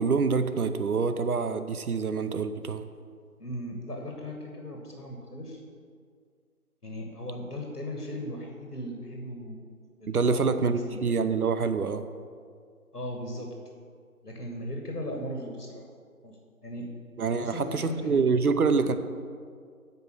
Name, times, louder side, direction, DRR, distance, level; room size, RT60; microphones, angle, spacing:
voice 1, 0.0-2.8 10.1-12.0 17.2-18.9, right 5 dB, 70° right, 10 dB, 0.7 m, -26 dB
voice 2, 3.4-5.6 6.8-9.7 10.0-11.0 12.9-13.5 14.2-15.9 16.2-16.9 17.4-18.2, equal, 85° left, 1 dB, 1.6 m, -37 dB
7.8 x 5.3 x 6.6 m, 2.1 s
figure-of-eight pair, 160°, 46 cm